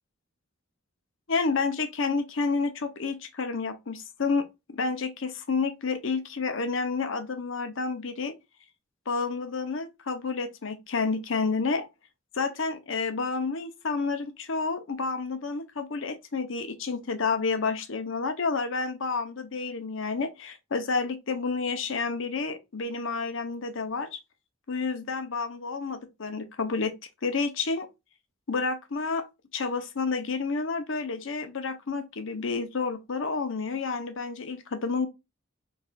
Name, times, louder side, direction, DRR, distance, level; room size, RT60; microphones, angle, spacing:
voice 1, 1.3-4.4 4.7-8.4 9.1-11.9 12.3-24.2 24.7-26.9 27.2-27.9 28.5-29.3 29.5-35.1, left 4 dB, 65° left, 0.7 m, -30 dB
4.2 x 3.2 x 2.4 m
head